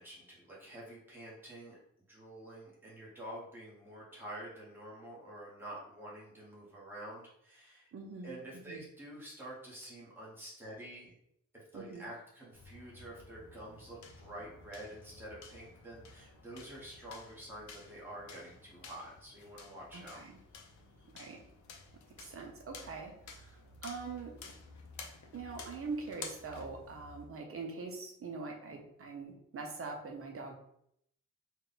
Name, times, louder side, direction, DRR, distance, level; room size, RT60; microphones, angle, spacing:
voice 1, 0.0-1.8 2.1-7.9 8.2-11.1 11.5-20.2 20.5-20.7 21.0-21.1, right 1 dB, 5° right, -7 dB, 1.1 m, -48 dB
voice 2, 7.9-8.8 11.7-12.1 19.9-20.3 21.1-21.4 22.2-24.3 25.3-30.5, right 4 dB, 45° right, 1 dB, 0.6 m, -43 dB
sound 1, 12.5-27.3, left 4 dB, 65° left, 0.6 m, -52 dB
3.6 x 2.2 x 3.9 m, 0.73 s
wide cardioid pair, 175°, 31 cm